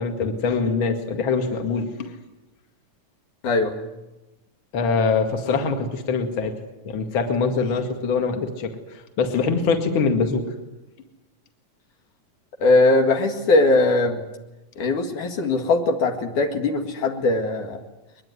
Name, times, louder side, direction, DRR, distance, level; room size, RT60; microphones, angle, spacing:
voice 1, 0.0-2.1 4.7-6.5 6.8-8.7 9.2-10.4, left 4 dB, 40° left, 5 dB, 2.6 m, -23 dB
voice 2, 3.4-3.8 12.6-14.2 14.8-17.8, left 2 dB, 65° left, 4 dB, 3.3 m, -20 dB
22.5 x 21.5 x 9.6 m, 1.0 s
omnidirectional pair, 3.9 m